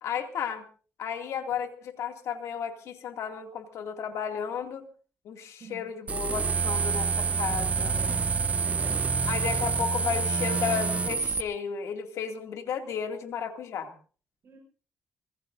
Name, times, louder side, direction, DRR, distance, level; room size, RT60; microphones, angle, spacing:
voice 1, 0.0-0.6 1.0-4.9 5.2-8.0 9.3-13.9, left 7 dB, 85° left, 5 dB, 2.4 m, -33 dB
sound 1, 6.1-11.4, right 5 dB, 30° right, 0.7 m, -27 dB
voice 2, 7.9-9.0 14.4-14.6, right 6 dB, 55° right, -2 dB, 6.6 m, -46 dB
25.5 x 19.5 x 2.6 m, 0.39 s
cardioid pair, 120°, 5 cm